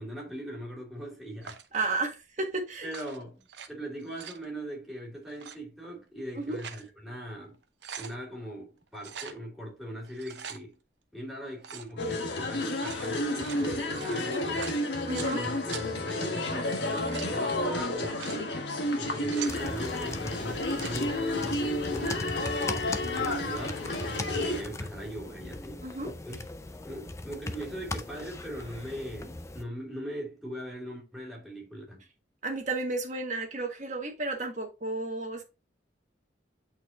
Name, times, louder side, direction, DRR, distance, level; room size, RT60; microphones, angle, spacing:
voice 1, 0.0-1.6 2.8-7.6 8.0-10.8 11.1-14.7 15.1-18.6 18.9-25.8 26.2-26.4 26.8-32.0, right 1 dB, ahead, 2.8 m, -40 dB
sound 1, 1.4-1.8 2.8-3.7 4.0-4.4 5.3-5.6 6.3-6.9 7.3-7.4 7.6-8.2 9.0-9.4 10.0-10.6 11.6-11.9 12.6-15.3 15.7-15.8 16.7-17.3 18.0-18.4 19.0-19.6 20.5-21.0, right 8 dB, 70° right, 0.7 m, -43 dB
voice 2, 1.7-2.9 6.4-6.6 15.1-15.4 23.0-23.5 25.8-26.1 32.4-35.4, right 3 dB, 40° right, 1.5 m, -33 dB
sound 2, 12.0-24.6, left 1 dB, 70° left, 1.4 m, -31 dB
sound 3, 19.5-29.6, left 2 dB, 15° left, 0.4 m, -39 dB
8.1 x 4.5 x 2.6 m
head